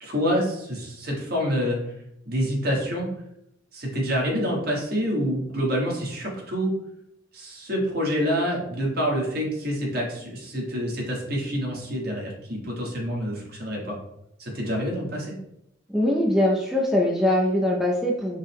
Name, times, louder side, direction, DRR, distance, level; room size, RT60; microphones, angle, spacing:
voice 1, 0.0-1.8 2.2-3.1 3.7-6.7 7.3-14.0 14.4-15.3, equal, 55° right, -2 dB, 1.3 m, -27 dB
voice 2, 15.9-18.4, left 1 dB, ahead, -3 dB, 0.4 m, -22 dB
5.1 x 2.1 x 3.4 m, 0.78 s
head